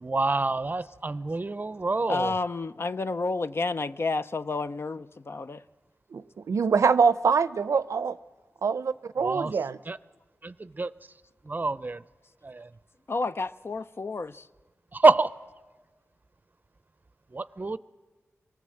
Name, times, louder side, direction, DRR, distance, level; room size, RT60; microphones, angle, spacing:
voice 1, 0.0-2.3 9.2-9.5 9.9-10.0 10.4-10.9 11.5-12.0 12.4-12.7 14.9-15.3 17.3-17.8, right 3 dB, 35° right, 0.6 m, -26 dB
voice 2, 2.1-5.6 13.1-14.5, left 3 dB, 50° left, 0.6 m, -30 dB
voice 3, 6.1-8.2 8.6-9.8, right 5 dB, 80° right, 0.6 m, -24 dB
24.5 x 18.5 x 7.7 m
cardioid pair, 60°, 5 cm